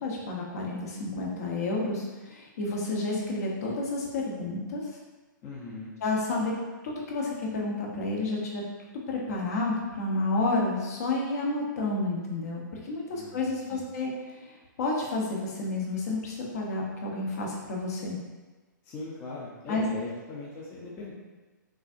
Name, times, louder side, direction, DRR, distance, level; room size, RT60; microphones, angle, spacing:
voice 1, 0.0-4.8 6.0-6.5 6.8-8.6 9.1-14.5 14.8-18.2 19.7-19.9, left 2 dB, 50° left, -2 dB, 1.0 m, -30 dB
voice 2, 5.4-5.9 13.1-13.8 18.8-21.1, left 2 dB, 20° left, -6 dB, 0.7 m, -40 dB
5.9 x 2.7 x 2.6 m, 1.2 s
hypercardioid pair, 155°, 11 cm